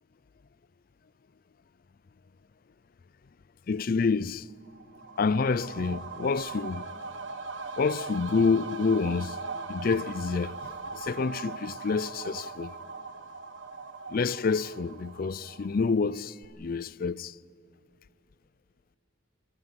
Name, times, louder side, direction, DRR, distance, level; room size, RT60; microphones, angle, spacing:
voice 1, 3.7-4.5 5.2-6.8 7.8-9.4 9.7-12.7 14.1-17.4, left 4 dB, 50° left, 0.4 m, -28 dB
sound 1, 4.7-16.1 16.4-16.5, right 3 dB, 80° right, 1.3 m, -40 dB
25.5 x 14.5 x 9.8 m
head